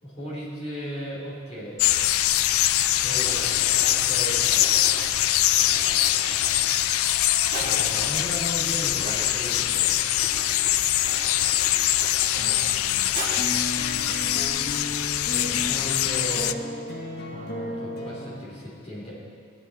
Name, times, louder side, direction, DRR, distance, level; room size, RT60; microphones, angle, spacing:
voice 1, 0.0-1.8 3.0-4.8 6.8-6.9 7.6-10.1 12.3-12.6 15.3-16.6 17.3-19.1, equal, 30° left, -7 dB, 3.4 m, -36 dB
sound 1, 1.8-16.5, left 13 dB, 75° left, 0.4 m, -23 dB
Writing, 3.1-7.9 8.4-8.5 8.8-13.5 13.9-14.5, right 2 dB, 35° right, 2.2 m, -39 dB
voice 2, 5.6-6.0 12.3-13.1, right 1 dB, 70° right, 5 dB, 0.8 m, -47 dB
sound 2, 13.4-18.4, left 1 dB, 45° left, 1.6 m, -34 dB
15.5 x 9.6 x 4.2 m, 2.6 s
head